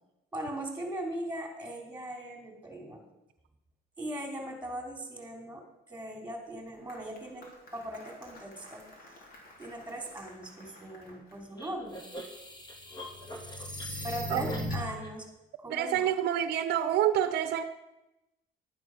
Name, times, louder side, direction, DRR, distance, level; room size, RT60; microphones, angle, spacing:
voice 1, 0.3-3.0 4.0-8.9 9.6-12.0 14.0-15.3 15.6-16.1, right 1 dB, 10° right, 2 dB, 3.3 m, -39 dB
Applause, 6.4-11.9, left 1 dB, 55° left, 3.7 m, -54 dB
sound 1, 11.6-15.1, equal, 25° left, 2.4 m, -38 dB
voice 2, 15.7-17.6, right 10 dB, 75° right, 11 dB, 0.8 m, -27 dB
11.5 x 9.6 x 6.1 m, 0.92 s
cardioid pair, 110°, 17 cm